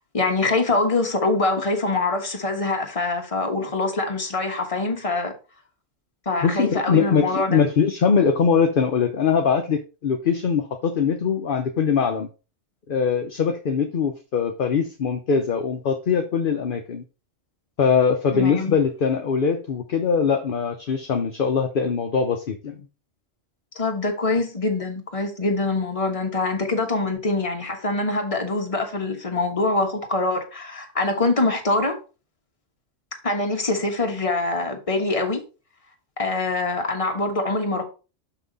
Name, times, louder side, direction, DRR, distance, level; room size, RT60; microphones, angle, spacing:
voice 1, 0.1-5.3 6.2-7.6 18.3-18.8 23.7-32.0 33.2-35.4 36.2-37.8, left 2 dB, 30° left, 1.3 m, -24 dB
voice 2, 6.4-12.3 12.9-17.0 17.8-22.8, left 6 dB, 50° left, 0.8 m, -22 dB
6.2 x 5.9 x 4.0 m
omnidirectional pair, 1.3 m